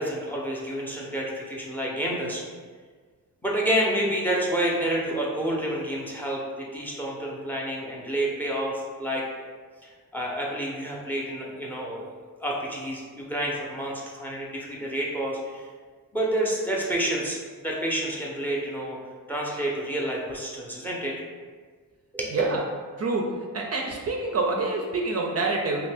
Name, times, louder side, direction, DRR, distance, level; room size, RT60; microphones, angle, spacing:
voice 1, 0.0-2.4 3.4-9.2 10.1-12.1 12.4-15.7 16.1-17.4 17.6-19.0 19.3-21.1 22.1-22.3, right 1 dB, 5° left, -3 dB, 0.6 m, -29 dB
voice 2, 22.3-22.6 23.0-23.3 23.5-25.9, right 3 dB, 45° right, 0 dB, 0.4 m, -27 dB
2.8 x 2.6 x 3.4 m, 1.5 s
wide cardioid pair, 115°, 34 cm